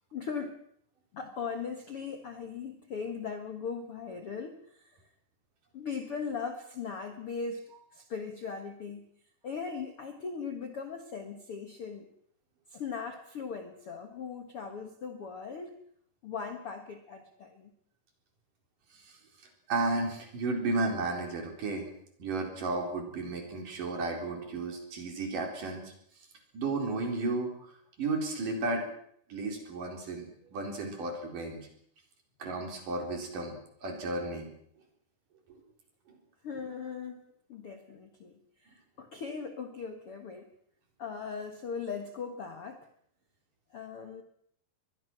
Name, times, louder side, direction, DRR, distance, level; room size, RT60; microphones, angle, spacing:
voice 1, 0.1-0.6 1.1-5.0 5.7-9.1 9.4-12.1 12.7-15.8 16.2-17.7 36.4-37.2 37.5-40.5 41.0-42.9 43.7-44.2, left 5 dB, 50° left, 5 dB, 1.7 m, -39 dB
voice 2, 19.7-21.9 22.2-25.8 26.5-27.5 28.0-28.9 29.3-31.6 32.4-34.5, right 3 dB, 55° right, 2 dB, 5.6 m, -33 dB
22.5 x 22.0 x 6.2 m, 0.67 s
omnidirectional pair, 4.7 m